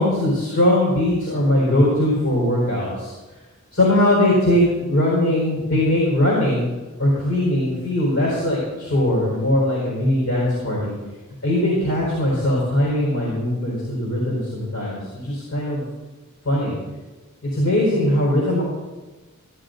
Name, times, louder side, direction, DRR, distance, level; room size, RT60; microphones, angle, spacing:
voice 1, 0.0-3.1 3.7-6.6 7.0-10.9 11.4-15.8 16.4-16.8 17.5-18.6, left 1 dB, 65° left, -5 dB, 4.3 m, -20 dB
15.0 x 9.9 x 3.9 m, 1.2 s
head